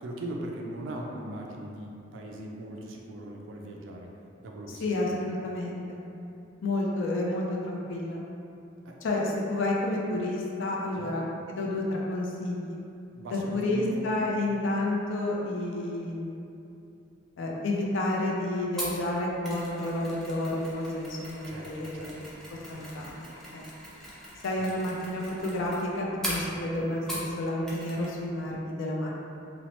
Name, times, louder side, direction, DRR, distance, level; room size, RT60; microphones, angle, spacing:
voice 1, 0.0-4.1 4.4-5.2 8.9-9.0 11.0-11.1 13.1-14.0 21.5-22.3 22.7-22.9, right 1 dB, 75° right, 0 dB, 0.4 m, -39 dB
voice 2, 4.7-6.0 6.6-8.2 9.0-12.8 13.3-16.4 17.4-22.1 22.7-23.3 23.5-23.6 24.4-29.1, left 1 dB, 80° left, -2 dB, 0.4 m, -30 dB
Mechanisms, 18.8-27.4 27.7-28.1 28.4-28.5, equal, 5° left, 0.4 m, -40 dB
2.8 x 2.0 x 2.9 m, 2.7 s
head